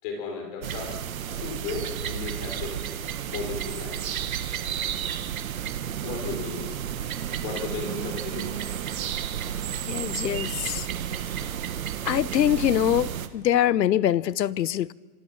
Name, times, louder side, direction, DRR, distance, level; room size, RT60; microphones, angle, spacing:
voice 1, 0.0-1.0 1.3-2.8 3.3-4.0 6.0-6.8 7.4-8.8, left 5 dB, 25° left, 5.1 m, -35 dB
sound 1, 0.6-13.3, right 9 dB, 55° right, 1.5 m, -32 dB
voice 2, 9.8-10.9 12.0-14.9, left 11 dB, 80° left, 1.0 m, -24 dB
29.0 x 26.0 x 5.9 m
hypercardioid pair, 180°, 50 cm